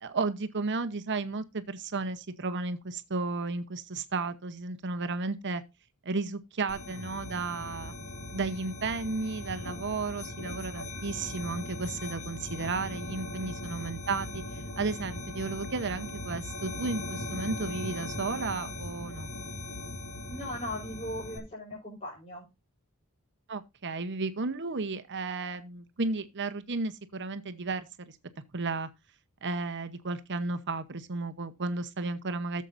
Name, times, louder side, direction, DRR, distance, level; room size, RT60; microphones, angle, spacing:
voice 1, 0.0-5.6 6.0-7.9 8.3-19.3 23.5-28.2 28.5-28.9 29.4-32.6, right 3 dB, 55° right, 0.9 m, -33 dB
sound 1, 6.7-21.4, left 2 dB, 70° left, 2.6 m, -39 dB
voice 2, 20.2-22.5, left 1 dB, 35° left, 5.3 m, -39 dB
14.5 x 7.4 x 2.6 m
head